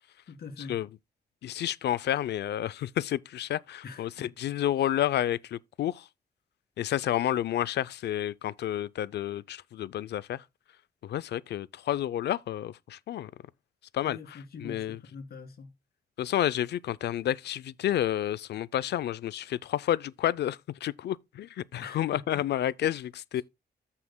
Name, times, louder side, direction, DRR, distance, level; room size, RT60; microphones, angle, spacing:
voice 1, 0.3-0.8 3.8-4.3 4.8-4.9 14.0-15.7 21.8-22.5 23.4-23.5, left 4 dB, 65° left, 2.1 m, -44 dB
voice 2, 1.4-6.0 6.8-10.4 11.0-13.3 13.9-14.2 14.6-15.0 16.2-23.4, left 11 dB, 85° left, 0.4 m, -30 dB
14.0 x 5.7 x 2.2 m
cardioid pair, 110°, 17 cm